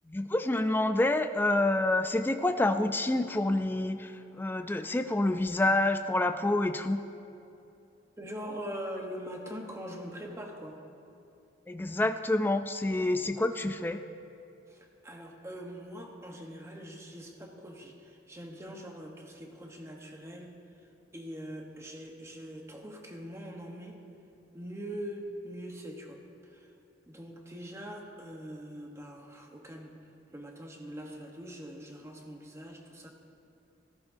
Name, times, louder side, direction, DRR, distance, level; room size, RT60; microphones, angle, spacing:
voice 1, 0.1-7.0 11.7-14.0, left 2 dB, 10° left, 8 dB, 0.3 m, -28 dB
voice 2, 8.2-10.8 14.7-20.6 21.1-24.0 24.5-26.7 27.1-29.9 30.3-33.1, equal, 15° right, 1 dB, 1.0 m, -43 dB
15.0 x 13.0 x 2.6 m, 2.7 s
head